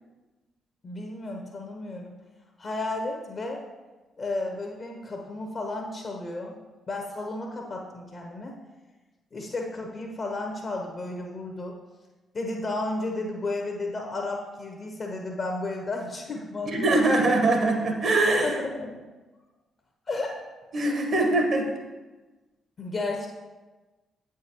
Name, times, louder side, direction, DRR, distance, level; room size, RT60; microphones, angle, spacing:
voice 1, 0.8-2.1 2.6-3.6 4.2-6.5 6.9-8.5 9.3-11.8 12.3-17.2 18.4-19.0 20.1-20.3 22.8-23.3, left 2 dB, 45° left, 1 dB, 0.8 m, -33 dB
voice 2, 16.6-18.6 20.7-21.7, right 2 dB, 55° right, 3 dB, 1.1 m, -22 dB
7.9 x 4.8 x 2.9 m, 1.2 s
hypercardioid pair, 40°, 0 cm